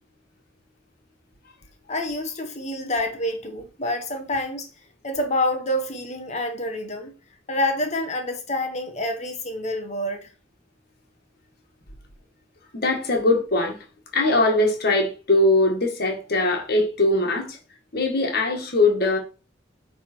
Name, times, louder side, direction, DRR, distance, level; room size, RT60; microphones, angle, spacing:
voice 1, 1.9-4.7 5.0-7.1 7.5-10.3, left 1 dB, 35° left, 1.1 m, -27 dB
voice 2, 12.7-13.8 14.1-17.6 17.9-19.2, left 2 dB, 55° left, 1.7 m, -21 dB
9.4 x 3.6 x 4.4 m
head